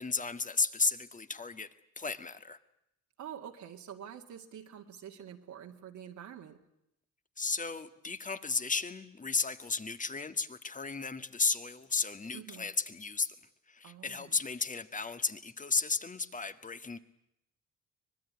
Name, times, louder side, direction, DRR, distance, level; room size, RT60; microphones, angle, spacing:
voice 1, 0.0-1.7 2.0-2.6 7.4-13.3 13.7-17.0, left 4 dB, 25° left, 11 dB, 1.7 m, -34 dB
voice 2, 3.2-6.6 12.3-12.7 13.8-14.4, right 9 dB, 70° right, 2 dB, 2.2 m, -47 dB
25.0 x 20.0 x 9.6 m, 0.81 s
cardioid pair, 90°, 30 cm